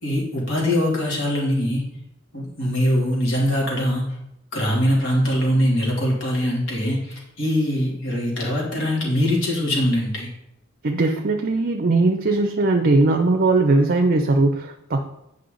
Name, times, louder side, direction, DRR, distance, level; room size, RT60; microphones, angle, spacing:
voice 1, 0.0-1.8 2.3-4.1 4.5-10.3, equal, 70° left, -3 dB, 2.8 m, -22 dB
voice 2, 10.8-15.2, right 2 dB, 45° right, 5 dB, 0.6 m, -19 dB
8.5 x 5.4 x 3.9 m, 0.83 s
head